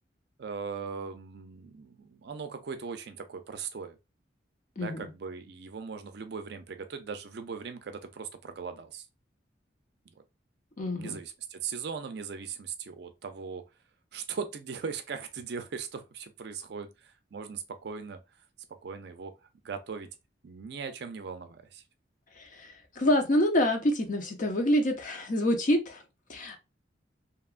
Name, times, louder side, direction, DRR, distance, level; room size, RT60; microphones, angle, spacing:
voice 1, 0.4-4.0 4.8-9.1 10.9-13.6 14.1-18.2 18.8-19.3 19.6-20.1 20.4-21.8, right 5 dB, 60° right, 0.4 m, -39 dB
voice 2, 4.8-5.1 10.8-11.2 22.4-26.0 26.3-26.6, left 1 dB, 45° left, 0.6 m, -27 dB
2.8 x 2.2 x 2.4 m
head